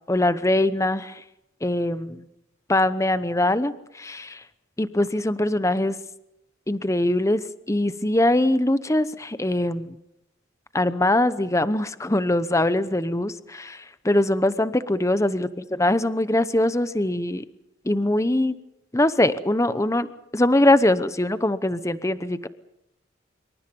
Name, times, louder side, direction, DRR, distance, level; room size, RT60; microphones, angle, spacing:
voice 1, 0.1-1.2 1.6-2.2 2.7-4.4 4.8-6.0 6.7-7.4 7.7-10.0 10.7-17.4 17.8-18.5 18.9-22.5, left 1 dB, 15° left, 13 dB, 0.9 m, -22 dB
26.5 x 24.0 x 5.4 m, 0.82 s
head